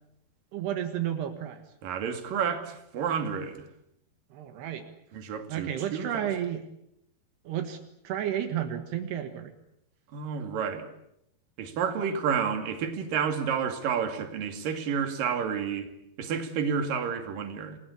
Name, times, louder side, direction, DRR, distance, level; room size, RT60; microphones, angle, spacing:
voice 1, 0.5-1.6 4.3-4.8 5.5-6.7 7.5-7.8 8.1-9.5, right 10 dB, 80° right, 3.7 m, -32 dB
voice 2, 1.8-3.6 5.1-6.3 10.1-10.9 11.6-15.9 16.2-17.8, right 7 dB, 60° right, 3.9 m, -30 dB
29.0 x 20.5 x 8.6 m
omnidirectional pair, 4.8 m